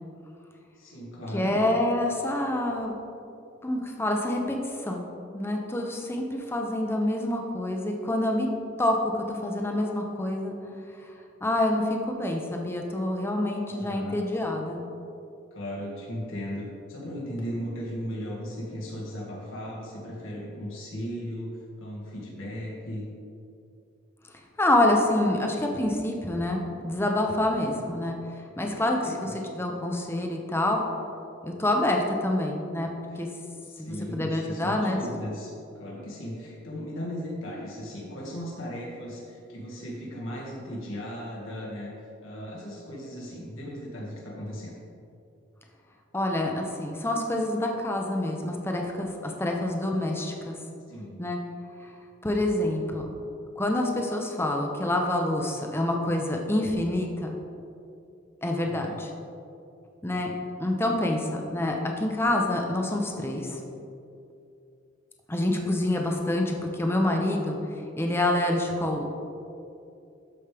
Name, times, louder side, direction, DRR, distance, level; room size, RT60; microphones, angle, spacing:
voice 1, 0.8-1.6 13.7-14.2 15.5-23.1 28.5-29.3 33.1-33.2 33.6-41.9 42.2-44.7 50.9-51.2 58.6-59.0, equal, 90° left, -4 dB, 2.1 m, -37 dB
voice 2, 1.3-2.9 3.6-4.6 4.8-5.0 5.3-8.5 8.8-10.5 11.4-14.9 24.6-28.2 28.6-29.3 29.6-30.8 31.4-32.9 33.2-33.3 33.8-35.0 46.1-50.6 51.2-51.4 52.2-53.2 53.6-57.4 58.4-59.1 60.0-60.3 60.6-63.6 65.3-67.6 68.0-69.2, left 1 dB, 10° left, 1 dB, 0.8 m, -27 dB
12.5 x 5.1 x 3.5 m, 2.6 s
head